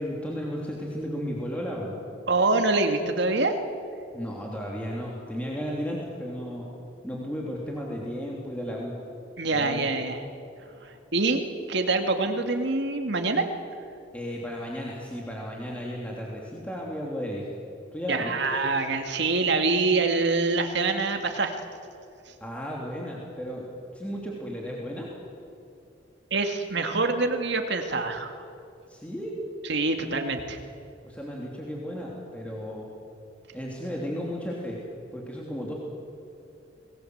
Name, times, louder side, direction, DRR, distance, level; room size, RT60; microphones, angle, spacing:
voice 1, 0.0-2.0 4.1-6.6 7.0-8.9 9.5-9.9 14.1-17.5 17.9-18.5 22.4-23.7 23.9-25.1 28.9-29.4 31.0-32.9 33.5-34.8 35.1-35.7, equal, 5° left, -3 dB, 3.2 m, -34 dB
voice 2, 2.3-3.6 9.4-10.2 10.8-11.4 11.7-13.5 18.1-21.6 22.3-22.4 26.3-28.3 29.7-30.6, right 3 dB, 65° right, 5 dB, 2.3 m, -25 dB
28.5 x 20.5 x 8.1 m, 2.6 s
head